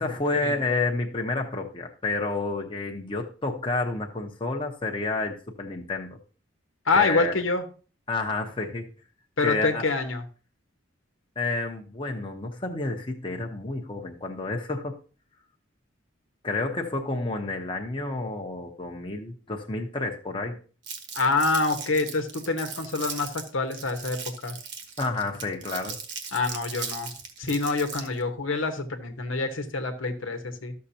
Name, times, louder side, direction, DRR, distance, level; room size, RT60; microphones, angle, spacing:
voice 1, 0.0-6.2 6.9-7.4 8.1-8.9 9.4-9.8 11.4-14.9 16.4-20.6 25.0-26.0, left 3 dB, 25° left, 2 dB, 0.9 m, -30 dB
voice 2, 6.9-7.6 9.4-10.2 21.1-24.2 24.4-24.5 26.3-27.1 27.4-30.7, left 3 dB, 90° left, 6 dB, 1.2 m, -26 dB
Crumpling crinkling, 20.8-28.2, right 6 dB, 60° right, 1.4 m, -38 dB
12.5 x 6.6 x 2.8 m, 0.38 s
head